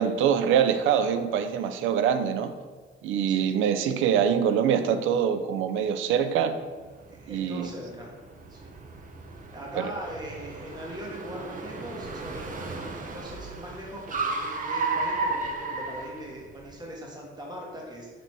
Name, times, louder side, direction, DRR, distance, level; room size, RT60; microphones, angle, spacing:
voice 1, 0.0-2.5 3.0-6.6 7.3-7.7 9.8-9.9, right 8 dB, 90° right, 10 dB, 0.5 m, -24 dB
Car, 6.9-16.7, right 3 dB, 40° right, 0.8 m, -34 dB
voice 2, 7.1-8.2 8.5-8.8 9.5-18.1, equal, 20° right, -2 dB, 1.5 m, -40 dB
6.0 x 4.0 x 4.5 m, 1.4 s
cardioid pair, 90°, 20 cm